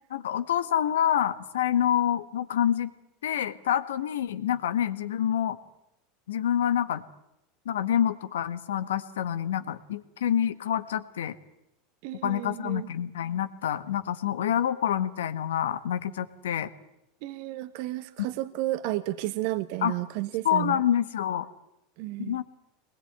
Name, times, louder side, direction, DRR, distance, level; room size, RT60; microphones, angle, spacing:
voice 1, 0.1-2.9 3.2-5.6 6.3-7.0 7.6-11.3 12.2-16.7 19.8-19.9 20.4-21.5 22.2-22.4, left 10 dB, 85° left, 12 dB, 1.5 m, -27 dB
voice 2, 12.0-12.9 17.2-20.8 22.0-22.4, right 16 dB, 65° right, 12 dB, 1.3 m, -32 dB
23.5 x 20.5 x 9.5 m, 0.81 s
hypercardioid pair, 100°, 0 cm